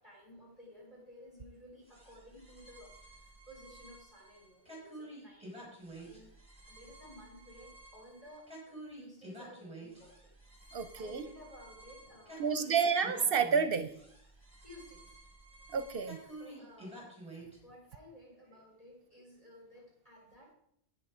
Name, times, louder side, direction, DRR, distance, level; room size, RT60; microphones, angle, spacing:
voice 1, 0.0-5.7 6.1-6.3 6.7-10.3 10.7-12.7 14.6-15.2 16.4-17.0 17.4-20.6, equal, 35° left, -3 dB, 5.4 m, -55 dB
sound 1, 1.8-17.6, right 1 dB, 5° right, 4.3 m, -51 dB
voice 2, 10.7-11.2 12.4-13.9 15.7-16.2, right 6 dB, 65° right, 11 dB, 0.8 m, -30 dB
10.0 x 9.2 x 4.9 m, 0.70 s
omnidirectional pair, 1.0 m